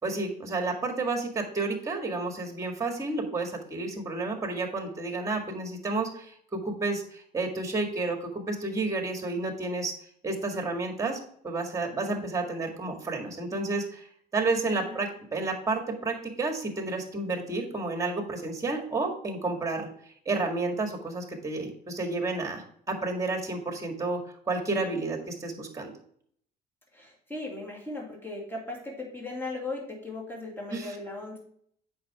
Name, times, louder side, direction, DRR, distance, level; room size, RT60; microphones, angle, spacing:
voice 1, 0.0-9.9 10.2-19.9 20.3-25.9 30.7-30.9, right 3 dB, 20° right, 3 dB, 1.8 m, -31 dB
voice 2, 26.9-31.4, left 2 dB, 15° left, -1 dB, 2.4 m, -37 dB
8.0 x 5.7 x 3.5 m, 0.63 s
cardioid pair, 110°, 17 cm